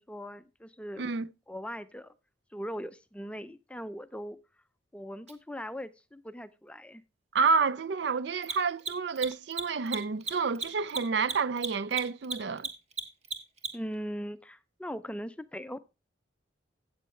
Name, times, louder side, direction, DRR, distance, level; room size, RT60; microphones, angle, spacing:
voice 1, 0.0-1.0 1.5-2.1 2.5-4.4 4.9-7.0 13.7-15.8, equal, 5° left, 0.4 m, -40 dB
voice 2, 1.0-1.3 7.3-12.7, right 5 dB, 60° right, 0.4 m, -29 dB
Mechanisms, 5.3-5.4 8.3-13.9, right 4 dB, 35° right, 1.3 m, -35 dB
13.0 x 8.4 x 3.2 m
head